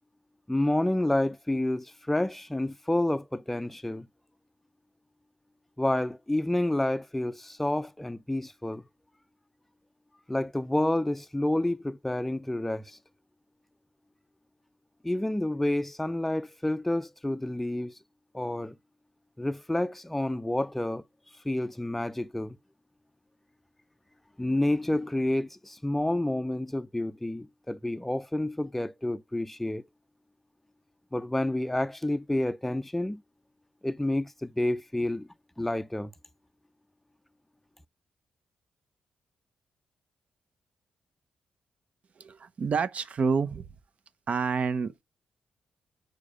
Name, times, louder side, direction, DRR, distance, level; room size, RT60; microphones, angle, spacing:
voice 1, 0.5-4.1 5.8-8.8 10.3-13.0 15.0-17.9 18.3-18.8 19.4-21.0 21.4-22.6 24.4-29.8 31.1-33.2 33.8-35.3 35.6-36.1, left 1 dB, 5° left, 0.5 m, -29 dB
voice 2, 42.2-43.7 44.3-45.0, right 5 dB, 55° right, 0.8 m, -28 dB
5.3 x 4.7 x 4.9 m
cardioid pair, 85°, 3 cm